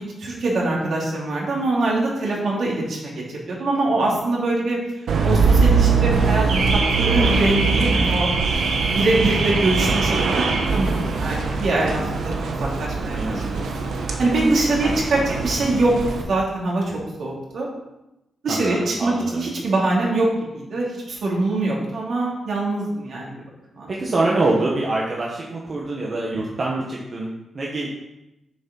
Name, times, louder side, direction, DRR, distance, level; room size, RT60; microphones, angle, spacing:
voice 1, 0.0-4.8 5.2-8.3 8.9-13.9 14.2-15.9 16.3-17.7 18.4-20.3 20.5-23.3 23.7-23.9, right 2 dB, 55° right, -3 dB, 2.9 m, -23 dB
Car / Alarm, 5.1-16.2, right 4 dB, 75° right, 1.2 m, -21 dB
voice 2, 7.7-8.1 13.1-13.7 14.8-15.4 18.5-19.5 23.9-27.9, right 2 dB, 35° right, -3 dB, 1.3 m, -25 dB
7.9 x 7.1 x 5.3 m, 0.93 s
wide cardioid pair, 170°, 0 cm